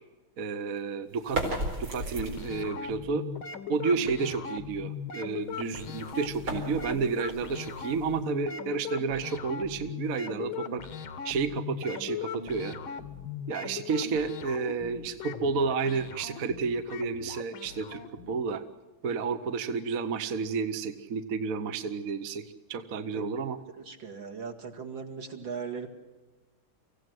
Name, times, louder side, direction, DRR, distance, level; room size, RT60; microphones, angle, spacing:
voice 1, 0.4-1.4 1.8-3.2 3.7-10.8 11.2-12.8 13.5-18.0 18.3-18.6 19.0-22.4 22.7-23.6, right 5 dB, 50° right, 9 dB, 1.2 m, -31 dB
sound 1, 1.1-2.8 5.5-8.4, right 2 dB, 85° right, 5.2 m, -36 dB
sound 2, 2.2-18.4, left 7 dB, 75° left, 2.1 m, -39 dB
voice 2, 23.8-25.9, right 5 dB, 65° right, 4 dB, 2.8 m, -38 dB
25.0 x 16.0 x 7.8 m, 1.2 s
omnidirectional pair, 2.3 m